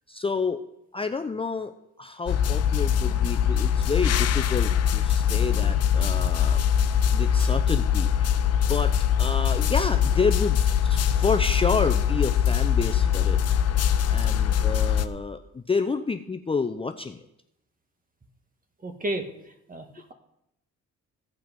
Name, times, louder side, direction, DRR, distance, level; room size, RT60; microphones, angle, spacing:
voice 1, 0.1-0.6 0.9-6.6 7.1-13.4 14.1-17.2, left 4 dB, 20° left, 7 dB, 0.6 m, -29 dB
sound 1, 2.3-15.1, left 8 dB, 55° left, 0.7 m, -22 dB
voice 2, 18.8-19.3 19.7-20.1, right 1 dB, 30° right, 6 dB, 1.7 m, -32 dB
15.5 x 5.8 x 5.3 m, 0.82 s
cardioid pair, 90°, 30 cm